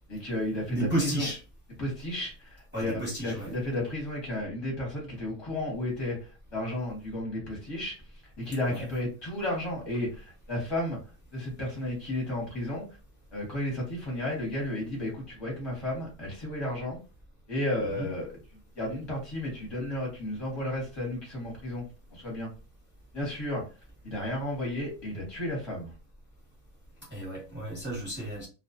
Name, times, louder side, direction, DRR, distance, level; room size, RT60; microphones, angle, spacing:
voice 1, 0.1-1.3 1.8-11.0 11.3-12.8 13.3-17.0 17.5-18.3 18.8-22.5 23.1-23.6 24.0-25.9, left 1 dB, 20° left, -2 dB, 0.8 m, -33 dB
voice 2, 0.7-1.4 2.7-3.5 8.7-8.8 18.0-18.1 27.1-28.5, right 1 dB, 10° right, -4 dB, 0.9 m, -32 dB
2.3 x 2.3 x 2.5 m, 0.32 s
omnidirectional pair, 1.6 m